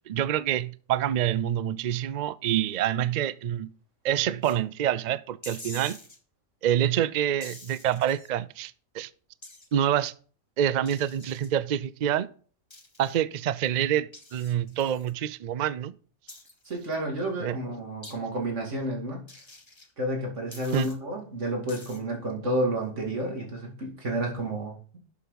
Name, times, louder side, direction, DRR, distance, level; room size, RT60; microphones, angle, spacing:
voice 1, 0.1-3.7 4.0-6.0 6.6-9.1 9.7-10.1 10.6-12.3 13.0-15.9 17.4-17.6 20.7-20.9, right 10 dB, 90° right, 0.4 m, -27 dB
sound 1, 4.4-4.6 5.4-6.2 7.4-8.3 9.4-9.7 10.9-11.5 12.7-13.2 14.1-15.1 16.3-16.9 18.0-18.1 19.3-19.9 20.5-20.9 21.7-22.0, left 2 dB, 20° left, 1.4 m, -46 dB
voice 2, 16.6-19.2 20.0-24.7, right 1 dB, 55° right, 3.1 m, -30 dB
12.0 x 7.0 x 4.0 m
omnidirectional pair, 1.5 m